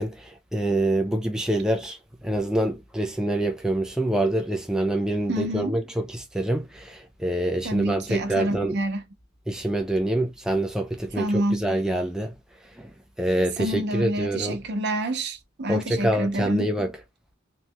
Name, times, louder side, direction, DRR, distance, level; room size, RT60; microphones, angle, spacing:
voice 1, 0.0-8.8 9.5-12.4 12.8-12.9 13.2-14.6 15.7-16.9, right 1 dB, 5° right, 0.3 m, -26 dB
voice 2, 5.3-5.8 7.6-9.0 11.1-11.6 13.6-16.8, right 1 dB, 55° right, 0.7 m, -28 dB
3.1 x 2.3 x 2.6 m
head